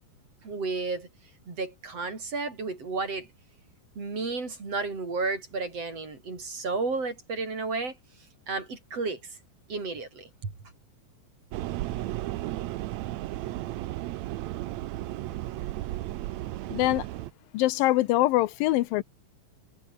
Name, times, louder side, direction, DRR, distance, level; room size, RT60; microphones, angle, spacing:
voice 1, 0.4-1.1 1.5-3.3 4.0-8.0 8.5-9.4 9.7-10.5, right 3 dB, 45° right, 6.0 m, -32 dB
sound 1, 11.5-17.3, right 16 dB, 80° right, 1.6 m, -34 dB
voice 2, 16.7-17.1 17.5-19.0, left 17 dB, 85° left, 2.5 m, -23 dB
omnidirectional pair, 4.1 m